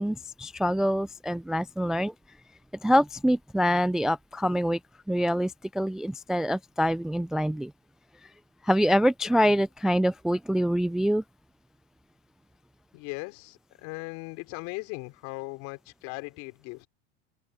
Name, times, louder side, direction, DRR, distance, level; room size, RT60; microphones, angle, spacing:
voice 1, 0.0-2.1 2.8-4.8 5.1-7.7 8.6-11.2, equal, ahead, 0.3 m, -25 dB
voice 2, 12.9-16.9, left 27 dB, 60° left, 3.5 m, -38 dB
open air
hypercardioid pair, 95°, 33 cm